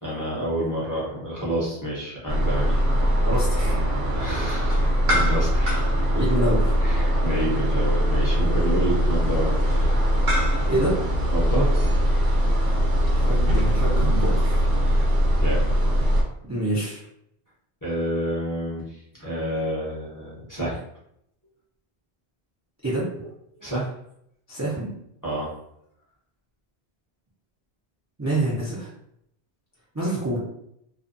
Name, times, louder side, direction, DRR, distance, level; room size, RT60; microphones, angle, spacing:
voice 1, 0.0-2.8 4.1-5.8 6.8-10.1 11.3-11.8 14.8-15.1 15.4-15.6 17.8-20.8 23.2-23.3 23.6-23.9 25.2-25.6, right 1 dB, 20° left, -7 dB, 0.6 m, -29 dB
sound 1, 2.3-16.2, equal, 75° right, 0.9 m, -21 dB
voice 2, 3.3-3.8 6.1-6.7 10.7-11.0 13.2-14.6 16.4-17.0 22.8-23.0 24.5-24.9 28.2-28.9 29.9-30.4, right 1 dB, 20° right, -7 dB, 0.5 m, -26 dB
2.4 x 2.2 x 2.5 m, 0.74 s
omnidirectional pair, 1.1 m